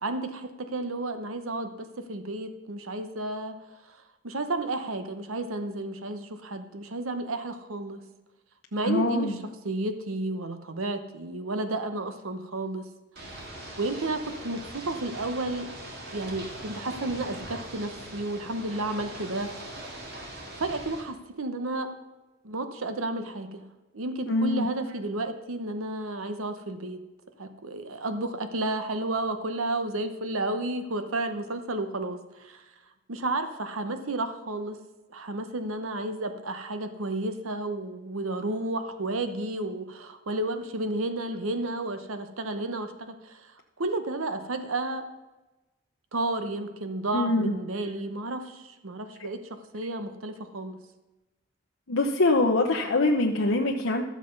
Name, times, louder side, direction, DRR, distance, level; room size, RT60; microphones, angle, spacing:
voice 1, 0.0-3.6 3.9-4.0 4.2-8.0 8.7-9.4 9.6-12.9 13.3-13.5 13.8-15.7 16.1-19.7 20.6-22.0 22.4-23.6 23.9-27.0 27.4-32.6 33.1-34.8 35.1-43.5 43.8-45.1 46.1-50.8, right 2 dB, 90° right, 8 dB, 1.0 m, -32 dB
voice 2, 8.8-9.3 24.3-24.7 47.1-47.5 49.2-49.3 51.9-54.0, left 2 dB, 80° left, 0 dB, 0.9 m, -24 dB
Ocean / Boat Water vehicle, 13.2-21.0, right 1 dB, 50° right, 2.1 m, -41 dB
12.5 x 7.5 x 5.3 m, 1.1 s
head